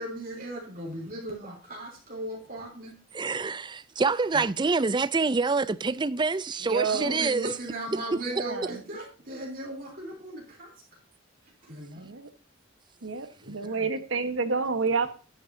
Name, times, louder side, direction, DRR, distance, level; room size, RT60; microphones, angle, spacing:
voice 1, 0.0-3.0 4.3-4.4 6.8-10.7 11.6-12.1 13.4-13.9, right 1 dB, 45° right, 3.4 m, -37 dB
voice 2, 3.1-7.5 7.9-8.0 8.3-8.4, right 4 dB, 25° right, 0.5 m, -26 dB
voice 3, 6.6-7.2 8.1-8.8 12.0-12.3 13.0-15.1, right 4 dB, 80° right, 1.3 m, -29 dB
10.5 x 9.5 x 2.7 m
head